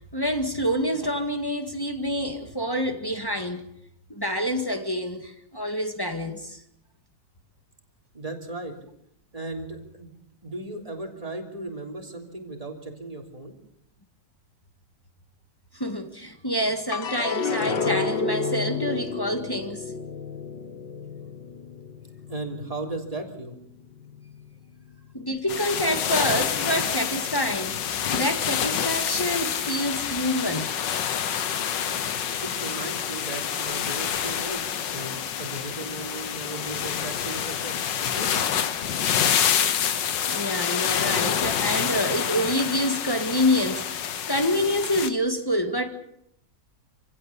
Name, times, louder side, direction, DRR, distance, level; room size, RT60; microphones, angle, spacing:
voice 1, 0.1-3.6 4.1-6.6 15.7-19.8 25.1-30.7 40.3-45.9, equal, 15° left, 1.8 m, -27 dB
voice 2, 8.1-8.7 9.3-10.1 10.4-13.5 22.3-23.6 32.4-37.8 38.1-38.5, right 2 dB, 20° right, 3.3 m, -36 dB
sound 1, 16.9-23.4 23.8-24.5, left 5 dB, 75° left, 1.9 m, -31 dB
sound 2, 25.5-45.1, left 8 dB, 90° left, 1.8 m, -27 dB
27.0 x 16.5 x 7.1 m
omnidirectional pair, 1.9 m